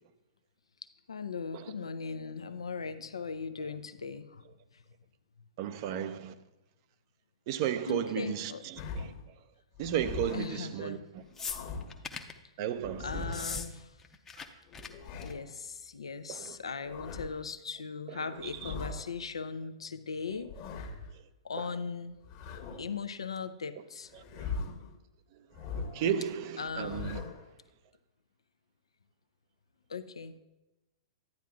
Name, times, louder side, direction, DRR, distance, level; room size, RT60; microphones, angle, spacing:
voice 1, 1.1-4.4 4.7-4.8 7.9-8.6 10.3-11.0 13.0-14.0 15.2-20.5 21.4-22.2 22.8-24.1 26.6-27.4 29.9-30.4, left 5 dB, 80° left, 0.5 m, -39 dB
voice 2, 5.6-6.3 7.5-9.1 9.8-11.0 12.6-13.3 14.4-14.5 16.3-16.6 18.4-18.7 24.1-24.5 25.7-27.2, right 9 dB, 45° right, 0.6 m, -34 dB
sound 1, 8.8-9.3 9.7-10.6 11.2-12.0 12.8-13.7 14.7-15.5 16.6-17.4 18.3-19.1 20.3-21.1 22.2-23.0 24.1-24.9 25.5-26.1 26.6-27.5, left 4 dB, 40° left, 1.2 m, -41 dB
sound 2, 11.4-12.4 13.2-13.7 13.9-14.5 14.7-14.9 15.2-15.5 16.5-16.6, left 5 dB, 15° left, 0.7 m, -39 dB
11.5 x 9.1 x 2.4 m
figure-of-eight pair, 110°, 3 cm